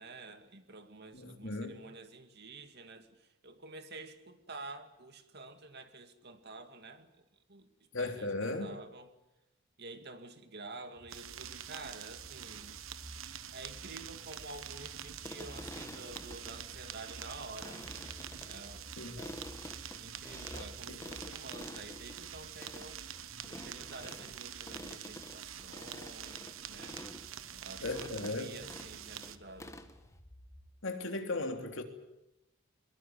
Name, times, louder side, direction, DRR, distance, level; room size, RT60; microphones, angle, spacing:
voice 1, 0.0-7.2 7.5-7.7 8.0-9.1 9.8-12.8 13.5-17.9 18.5-18.9 19.2-19.4 20.0-23.0 23.4-27.0 27.6-29.8, right 3 dB, 55° right, 2.3 m, -49 dB
voice 2, 1.1-1.7 7.9-8.7 19.0-19.2 20.9-21.0 27.8-28.5 30.8-31.8, left 2 dB, 65° left, 3.4 m, -36 dB
sound 1, 11.0-30.7, equal, 30° left, 4.0 m, -55 dB
sound 2, 11.1-29.4, right 10 dB, 85° right, 1.3 m, -46 dB
sound 3, 15.0-30.2, left 1 dB, 15° left, 1.7 m, -50 dB
22.5 x 22.5 x 9.6 m
head